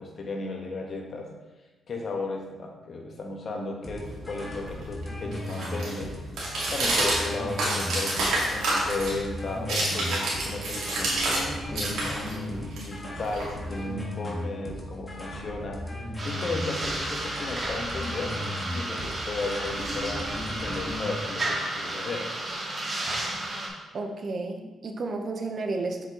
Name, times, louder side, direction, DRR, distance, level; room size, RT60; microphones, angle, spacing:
voice 1, 0.0-1.3 1.9-6.3 6.7-15.8 16.2-18.4 18.7-22.3, left 3 dB, 55° left, 1 dB, 1.2 m, -35 dB
sound 1, 3.8-21.2, left 1 dB, 25° left, 1.6 m, -37 dB
Walking on Broken Glass, 4.1-11.5 11.7-13.9, right 2 dB, 90° right, 2.0 m, -29 dB
making breakfast, 16.2-23.7, right 1 dB, 35° right, 1.7 m, -32 dB
voice 2, 23.9-26.1, right 3 dB, 55° right, 4 dB, 0.8 m, -32 dB
7.6 x 5.2 x 3.0 m, 1.2 s
cardioid pair, 80°, 0 cm